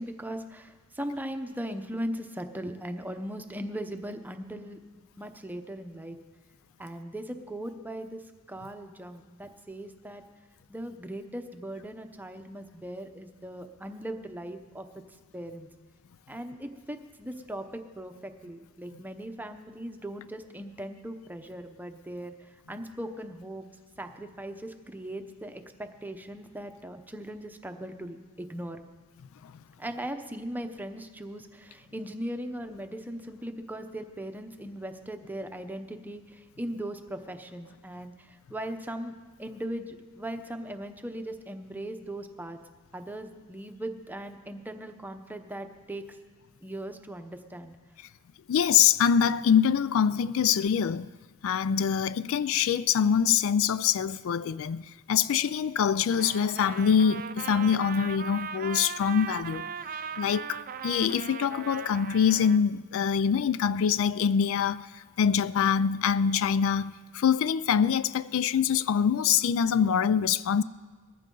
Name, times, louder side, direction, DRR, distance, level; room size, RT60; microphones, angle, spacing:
voice 1, 0.0-6.2 6.8-8.2 8.5-10.2 10.7-14.9 15.3-15.7 16.3-17.7 18.0-22.3 22.7-23.7 24.0-28.8 29.8-42.6 42.9-46.0 46.6-47.7, right 1 dB, 10° right, 0.8 m, -39 dB
voice 2, 48.5-51.1 51.4-59.7 60.2-70.6, left 7 dB, 70° left, 0.3 m, -24 dB
Trumpet, 56.1-62.6, right 7 dB, 40° right, 0.5 m, -39 dB
20.0 x 14.5 x 3.8 m
head